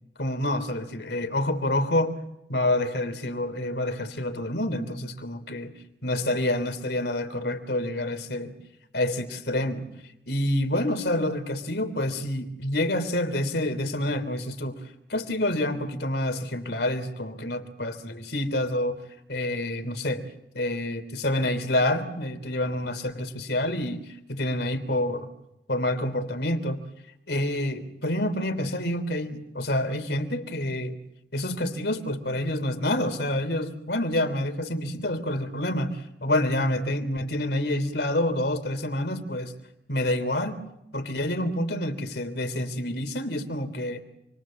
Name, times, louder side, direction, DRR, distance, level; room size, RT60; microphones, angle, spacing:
voice 1, 0.2-2.1 2.5-5.7 6.0-8.5 8.9-9.9 10.3-19.0 19.3-20.2 20.5-25.3 25.7-26.8 27.3-31.0 31.3-39.5 39.9-40.6 40.9-44.0, left 1 dB, 70° left, 8 dB, 3.3 m, -28 dB
28.5 x 23.0 x 7.5 m, 0.86 s
head